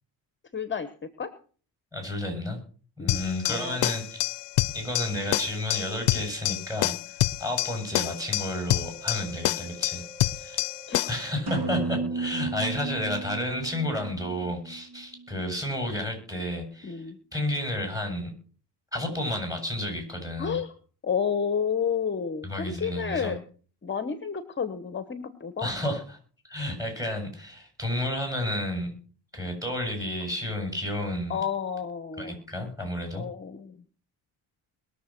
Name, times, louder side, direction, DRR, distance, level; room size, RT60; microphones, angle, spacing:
voice 1, 0.5-0.9 1.2-1.3 3.0-3.2 3.5-3.8 10.9-11.1 16.8-17.2 20.4-20.7 21.0-23.4 23.8-25.8 31.3-32.4 33.1-33.8, left 7 dB, 25° left, 11 dB, 1.1 m, -30 dB
voice 2, 1.9-2.6 3.0-4.2 4.7-10.0 10.4-10.6 11.1-17.0 17.3-18.3 18.9-20.6 22.4-23.3 25.6-26.2 26.5-28.9 29.3-31.4 32.2-33.3, left 1 dB, 10° right, 5 dB, 7.8 m, -31 dB
sound 1, 3.1-11.3, left 17 dB, 85° left, 0.6 m, -28 dB
sound 2, 9.0-14.3, right 4 dB, 50° right, 5.5 m, -52 dB
sound 3, 11.5-15.3, right 3 dB, 65° right, 3.7 m, -33 dB
21.5 x 7.3 x 5.9 m, 0.42 s
cardioid pair, 105°, 41 cm